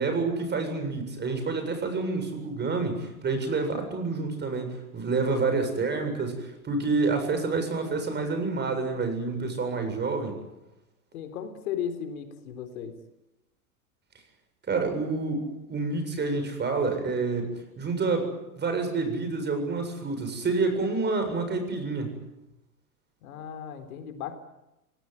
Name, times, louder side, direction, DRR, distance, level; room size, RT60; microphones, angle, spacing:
voice 1, 0.0-10.4 14.7-18.3 18.6-22.2, right 3 dB, 25° right, 7 dB, 7.6 m, -28 dB
voice 2, 11.1-13.0 23.2-24.4, left 8 dB, 70° left, 7 dB, 3.9 m, -36 dB
26.0 x 18.5 x 9.8 m, 0.96 s
hypercardioid pair, 105°, 44 cm